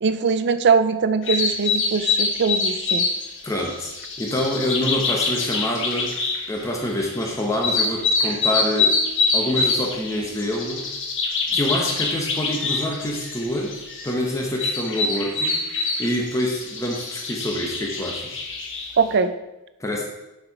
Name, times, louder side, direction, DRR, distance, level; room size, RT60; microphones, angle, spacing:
voice 1, 0.0-3.1 19.0-19.3, right 5 dB, 50° right, 11 dB, 0.5 m, -21 dB
sound 1, 1.2-19.0, left 4 dB, 55° left, 1.4 m, -25 dB
voice 2, 3.4-3.9 4.2-6.1 6.5-9.0 9.3-10.8 11.5-18.4 19.8-20.1, left 1 dB, 15° left, 0 dB, 0.8 m, -26 dB
6.6 x 5.8 x 4.7 m, 0.99 s
head